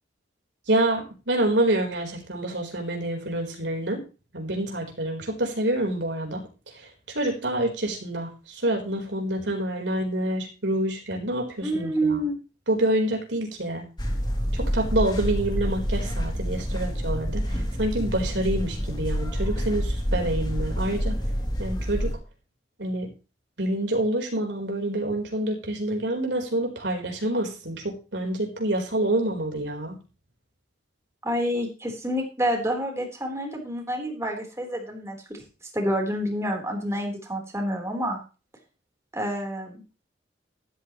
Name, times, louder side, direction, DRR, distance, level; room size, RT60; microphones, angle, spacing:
voice 1, 0.7-4.0 4.3-6.4 6.7-12.3 12.7-13.9 14.5-21.2 21.6-22.1 22.8-23.1 23.6-30.0, right 1 dB, 75° right, 2 dB, 4.2 m, -27 dB
voice 2, 11.6-12.4 31.2-35.4 35.7-38.2 39.1-39.8, equal, 15° right, 1 dB, 4.0 m, -28 dB
sound 1, 14.0-22.1, equal, 25° left, 2.9 m, -28 dB
13.5 x 13.0 x 3.1 m, 0.33 s
head